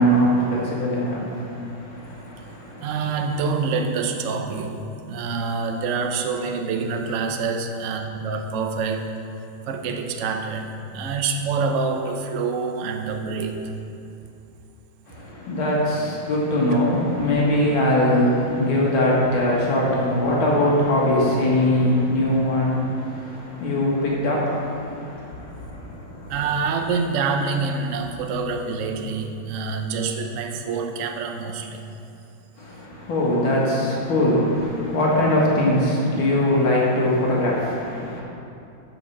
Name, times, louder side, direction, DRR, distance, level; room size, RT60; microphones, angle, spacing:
voice 1, 0.0-2.9 15.1-26.3 32.6-38.2, left 1 dB, 80° left, -5 dB, 2.6 m, -22 dB
voice 2, 2.8-9.1 9.6-13.6 16.7-16.8 26.3-31.8, right 4 dB, 60° right, 4 dB, 0.8 m, -26 dB
7.8 x 7.2 x 5.8 m, 2.7 s
omnidirectional pair, 2.2 m